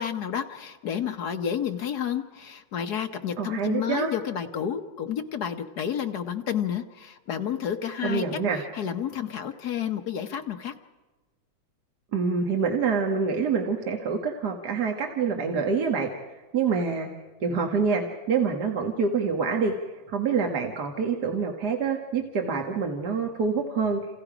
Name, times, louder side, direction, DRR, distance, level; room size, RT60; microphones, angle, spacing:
voice 1, 0.0-8.2 8.5-10.7, left 8 dB, 60° left, 7 dB, 1.4 m, -30 dB
voice 2, 3.4-4.1 8.0-8.6 12.1-16.1 16.5-17.1 17.4-19.7 20.1-24.0, right 5 dB, 55° right, 2 dB, 1.9 m, -26 dB
29.0 x 28.0 x 5.0 m, 1.2 s
omnidirectional pair, 2.1 m